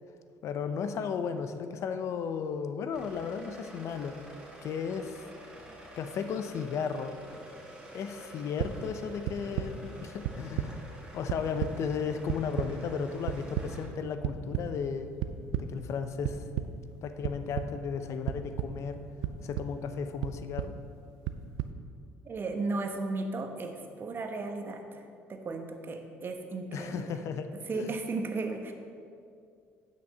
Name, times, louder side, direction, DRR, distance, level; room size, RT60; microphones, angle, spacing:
voice 1, 0.4-4.2 4.6-5.3 6.0-7.2 7.9-10.8 11.1-15.2 15.5-16.5 17.0-19.0 19.4-20.8 26.7-28.0, left 6 dB, 60° left, 9 dB, 0.6 m, -35 dB
sound 1, 2.9-13.9, right 1 dB, 15° right, 2.2 m, -49 dB
sound 2, 8.6-8.7 9.2-9.7 10.2-10.7 11.0-11.7 12.3-12.7 13.3-13.7 14.2-14.6 15.2-15.6 16.2-16.7 17.2-17.7 18.3-18.7 19.2-19.7 20.2-20.7 21.2-21.7, right 14 dB, 80° right, 0.5 m, -31 dB
voice 2, 22.2-27.2 27.7-28.7, right 3 dB, 40° right, 5 dB, 1.1 m, -35 dB
9.1 x 5.9 x 5.5 m, 2.3 s
supercardioid pair, 75°, 6 cm